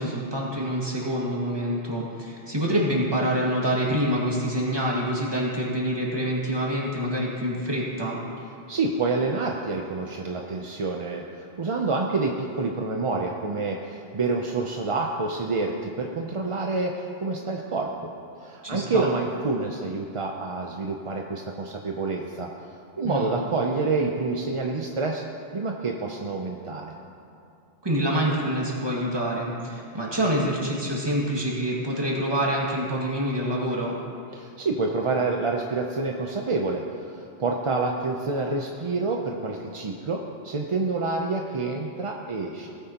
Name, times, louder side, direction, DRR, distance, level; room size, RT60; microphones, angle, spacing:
voice 1, 0.0-8.2 18.6-19.0 23.1-23.3 27.8-34.0, equal, 20° right, -4 dB, 2.0 m, -26 dB
voice 2, 8.7-17.9 18.4-22.5 23.0-25.2 25.5-26.9 34.3-42.7, right 3 dB, 40° right, 1 dB, 0.5 m, -28 dB
17.5 x 9.3 x 2.9 m, 2.6 s
omnidirectional pair, 1.2 m